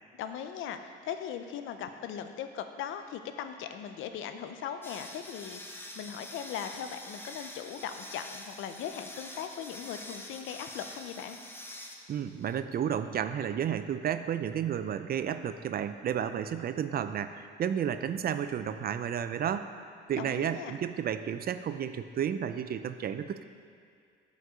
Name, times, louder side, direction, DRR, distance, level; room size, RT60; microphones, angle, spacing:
voice 1, 0.1-11.4 20.2-20.8, left 8 dB, 85° left, 8 dB, 0.6 m, -39 dB
sound 1, 4.8-12.5, left 1 dB, 10° left, 0.8 m, -46 dB
voice 2, 12.1-19.7 20.1-23.4, right 9 dB, 50° right, 11 dB, 0.4 m, -32 dB
7.8 x 5.4 x 4.9 m, 2.3 s
cardioid pair, 90°, 20 cm